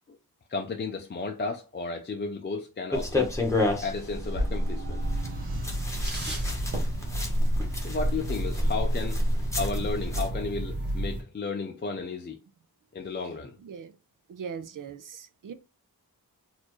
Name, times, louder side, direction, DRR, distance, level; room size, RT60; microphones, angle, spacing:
voice 1, 0.5-3.4 3.8-5.0 7.8-9.2 9.6-12.4 12.9-13.5, left 4 dB, 30° left, 0.4 m, -33 dB
sound 1, 2.9-10.3, left 1 dB, 10° left, 0.9 m, -29 dB
sound 2, 3.4-6.9, right 3 dB, 90° right, 0.9 m, -47 dB
sound 3, 5.0-11.2, right 1 dB, 25° right, 1.4 m, -32 dB
voice 2, 13.6-13.9 14.3-15.5, right 7 dB, 55° right, 0.6 m, -40 dB
4.2 x 2.5 x 3.0 m
wide cardioid pair, 135°, 37 cm